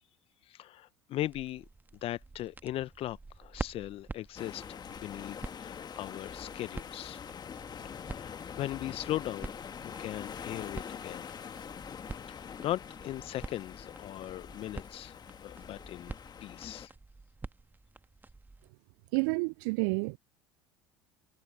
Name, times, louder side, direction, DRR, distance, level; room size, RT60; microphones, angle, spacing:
voice 1, 0.5-1.6 2.0-7.2 8.1-9.5 9.8-11.3 12.3-15.2 15.4-16.1 16.4-16.9, left 14 dB, 45° left, 1.1 m, -38 dB
sound 1, 1.2-18.7, right 3 dB, 15° right, 1.6 m, -47 dB
sound 2, 4.4-16.9, left 7 dB, 30° left, 2.0 m, -44 dB
voice 2, 19.1-20.2, right 34 dB, 60° right, 0.4 m, -29 dB
figure-of-eight pair, 65°, 13 cm